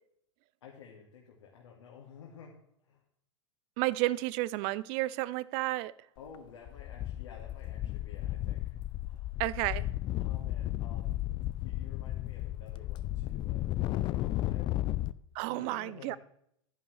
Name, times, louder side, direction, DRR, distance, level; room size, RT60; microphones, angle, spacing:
voice 1, 0.6-2.5 2.9-3.0 6.2-9.4 10.2-11.2 11.6-14.9 15.4-16.2, left 6 dB, 70° left, -2 dB, 2.2 m, -52 dB
voice 2, 3.8-5.9 9.4-9.9 15.3-16.2, right 18 dB, 40° right, 20 dB, 0.5 m, -31 dB
sound 1, 6.2-6.4 6.7-15.1, left 15 dB, 30° left, 0.4 m, -34 dB
11.0 x 11.0 x 3.3 m, 0.72 s
figure-of-eight pair, 100°, 16 cm